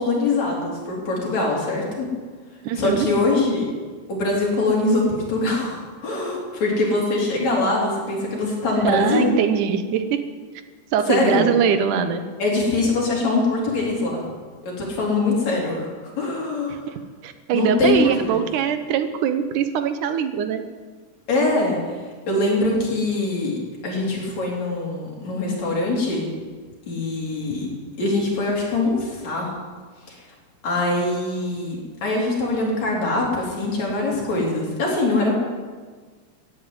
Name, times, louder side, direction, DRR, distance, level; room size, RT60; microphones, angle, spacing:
voice 1, 0.0-2.1 2.7-3.6 4.1-9.3 11.1-11.5 12.4-14.2 14.6-15.9 16.2-16.8 17.5-18.4 21.3-21.8 22.3-23.6 23.8-26.3 26.9-27.7 28.0-29.5 30.1-30.2 30.6-35.3, left 2 dB, 60° left, -3 dB, 5.1 m, -23 dB
voice 2, 2.6-3.1 8.8-10.3 10.9-12.2 16.7-20.6, right 8 dB, 80° right, 9 dB, 2.5 m, -22 dB
15.0 x 9.3 x 9.7 m, 1.5 s
omnidirectional pair, 3.5 m